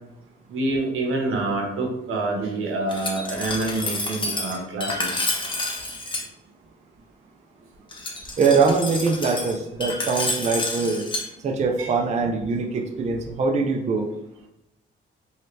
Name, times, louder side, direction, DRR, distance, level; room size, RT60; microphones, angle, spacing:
voice 1, 0.5-5.3 11.8-11.9, right 2 dB, 85° right, 1 dB, 0.9 m, -27 dB
Glass, 2.9-6.2 7.9-11.2, left 2 dB, 25° left, 0.6 m, -29 dB
voice 2, 8.4-11.1 11.4-14.1, right 4 dB, 35° right, 2 dB, 0.4 m, -22 dB
3.2 x 2.8 x 3.1 m, 0.83 s
cardioid pair, 115°, 21 cm